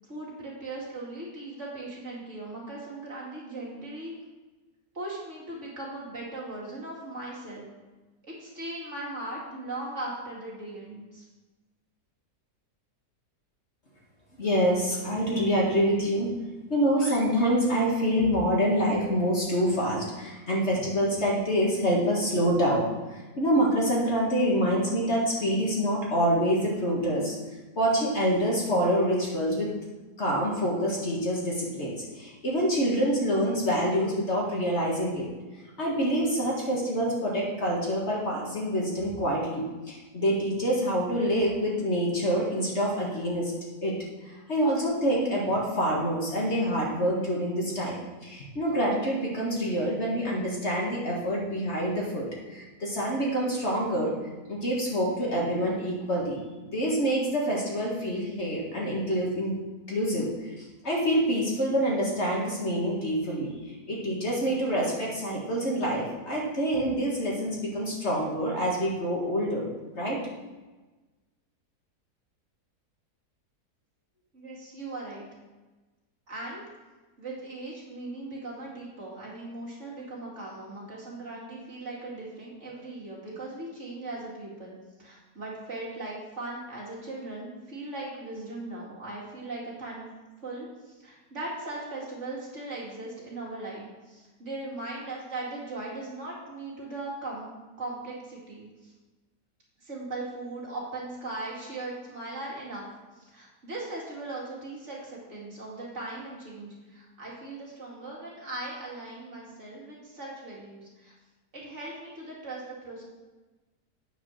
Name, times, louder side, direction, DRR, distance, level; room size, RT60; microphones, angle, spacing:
voice 1, 0.1-4.1 4.9-7.7 8.2-11.2 74.3-75.3 76.3-76.6 77.2-90.1 90.4-98.9 99.8-102.8 103.2-111.1 111.5-113.0, right 2 dB, 45° right, -5 dB, 2.5 m, -39 dB
voice 2, 14.4-16.3 16.7-27.4 27.8-29.7 30.2-35.3 35.8-43.5 43.8-44.0 44.2-54.2 54.5-59.6 59.9-69.7 70.0-70.2, equal, 40° left, -3 dB, 1.9 m, -26 dB
9.1 x 4.9 x 6.2 m, 1.2 s
omnidirectional pair, 1.8 m